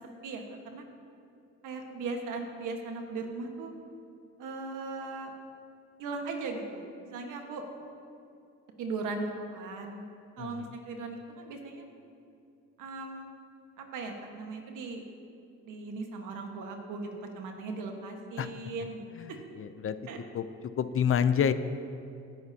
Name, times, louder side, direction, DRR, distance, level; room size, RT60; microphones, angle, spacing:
voice 1, 0.2-0.8 1.6-3.7 4.4-5.3 6.0-7.6 8.8-10.1 10.4-11.8 12.8-13.3 13.8-15.0 15.6-19.4 20.1-20.2, right 3 dB, 85° right, 3 dB, 1.5 m, -38 dB
voice 2, 10.4-10.7 18.4-18.5 19.2-20.0 20.3-20.4 20.8-21.5, left 8 dB, 45° left, 12 dB, 0.6 m, -28 dB
18.0 x 10.5 x 2.8 m, 2.7 s
cardioid pair, 90°, 30 cm